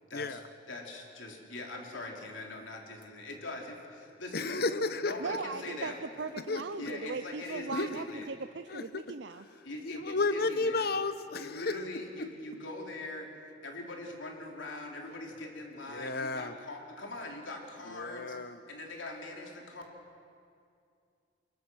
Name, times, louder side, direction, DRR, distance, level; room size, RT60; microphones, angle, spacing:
voice 1, 0.1-0.4 0.7-6.0 6.8-8.3 9.6-10.9 11.3-13.3 13.6-18.3 18.7-19.8, left 2 dB, 85° left, 0 dB, 3.4 m, -42 dB
voice 2, 4.3-5.1 6.5-6.6 7.7-7.9 8.7-9.0 9.8-11.8 15.9-16.5 17.9-18.6, left 3 dB, 55° left, 12 dB, 0.9 m, -32 dB
voice 3, 5.2-9.5 11.7-11.8, right 4 dB, 65° right, 9 dB, 0.6 m, -39 dB
23.5 x 22.0 x 6.2 m, 2.4 s
head